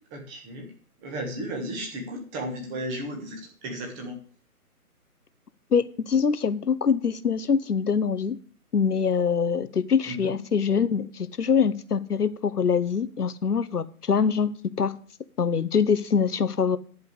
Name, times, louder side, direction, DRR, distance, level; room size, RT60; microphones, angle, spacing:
voice 1, 0.1-0.7 1.0-4.2 10.1-10.3, right 1 dB, 10° right, 1 dB, 1.6 m, -34 dB
voice 2, 5.7-8.4 8.7-14.5 14.8-14.9 15.4-16.8, left 6 dB, 75° left, 14 dB, 1.0 m, -24 dB
10.5 x 5.3 x 8.0 m, 0.43 s
figure-of-eight pair, 150°, 46 cm